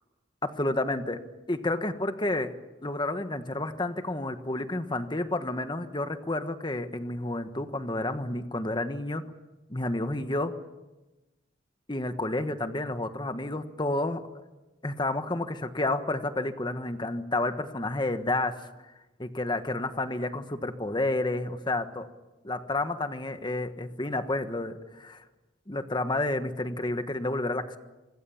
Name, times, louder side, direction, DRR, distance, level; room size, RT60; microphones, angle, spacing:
voice 1, 0.4-1.2 1.5-2.5 2.8-9.2 9.7-10.5 11.9-14.2 14.8-18.7 19.2-22.1 22.4-25.2 25.7-27.8, left 2 dB, 25° left, 8 dB, 1.4 m, -30 dB
25.5 x 25.0 x 7.2 m, 1.1 s
head